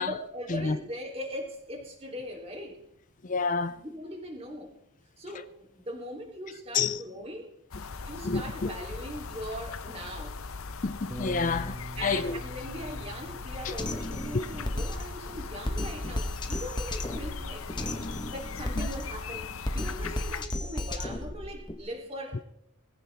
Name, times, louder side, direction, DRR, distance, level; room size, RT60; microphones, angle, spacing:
voice 1, 0.0-2.8 3.7-4.7 5.2-7.5 8.0-10.4 11.9-22.4, equal, 30° right, 3.3 m, -40 dB
voice 2, 3.2-3.7 6.7-7.0 8.2-8.7 10.8-12.4 13.6-13.7 14.3-14.4 18.8-18.9, left 4 dB, 35° left, 0.4 m, -29 dB
Spring Birds in Finnish forest, 7.7-20.5, left 4 dB, 70° left, 0.8 m, -39 dB
Bass guitar, 11.1-17.3, right 1 dB, 5° right, 1.2 m, -46 dB
Drum kit, 13.8-21.8, left 1 dB, 20° left, 1.2 m, -34 dB
21.5 x 15.5 x 3.5 m
head